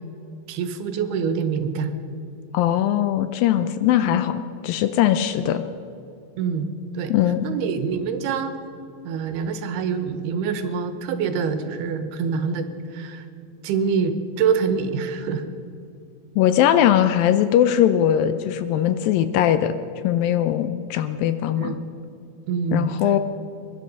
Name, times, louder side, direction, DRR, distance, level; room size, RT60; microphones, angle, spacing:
voice 1, 0.5-1.9 6.4-6.7 6.9-7.1 7.4-8.6 9.0-12.7 12.9-13.2 13.6-15.4 21.6-21.8 22.5-22.9, right 6 dB, 85° right, 9 dB, 3.1 m, -25 dB
voice 2, 2.5-5.6 7.1-7.5 16.4-19.7 20.0-21.8 22.7-23.2, left 11 dB, 80° left, 10 dB, 2.2 m, -20 dB
21.5 x 11.5 x 5.4 m, 2.7 s
omnidirectional pair, 4.5 m